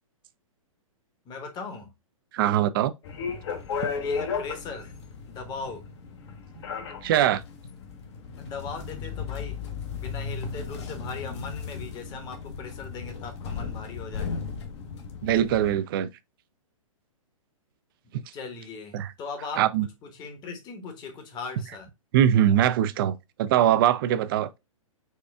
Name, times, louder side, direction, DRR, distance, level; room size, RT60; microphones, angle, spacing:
voice 1, 1.2-1.9 4.0-4.9 5.3-5.8 8.4-9.6 10.0-14.4 18.3-19.6 20.0-21.9, left 4 dB, 25° left, 0.9 m, -39 dB
voice 2, 2.3-2.9 3.3-3.4 7.0-7.4 15.2-16.1 18.9-19.1 19.6-19.9 22.1-24.6, right 11 dB, 40° right, 0.4 m, -22 dB
sound 1, 3.0-15.7, left 5 dB, 55° left, 0.8 m, -35 dB
4.3 x 2.3 x 3.4 m
hypercardioid pair, 125°, 18 cm